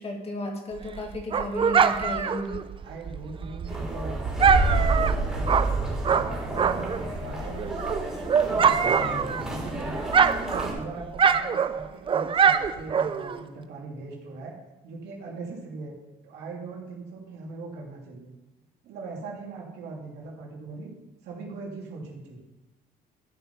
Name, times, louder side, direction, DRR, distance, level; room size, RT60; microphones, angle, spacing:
voice 1, 0.0-2.6, left 2 dB, 35° left, 2 dB, 2.1 m, -34 dB
Dog, 0.8-7.1 7.4-9.7 10.0-13.4, right 7 dB, 30° right, 0.5 m, -24 dB
voice 2, 2.8-5.5 5.8-7.7 8.5-9.0 9.2-10.0 10.5-14.6 14.8-15.9 16.2-18.3 18.8-20.9 21.2-22.4, right 3 dB, 80° right, -2 dB, 2.9 m, -40 dB
sound 1, 3.7-10.7, right 1 dB, 5° right, 3.6 m, -29 dB
12.5 x 5.6 x 5.6 m, 1.0 s
cardioid pair, 110°, 17 cm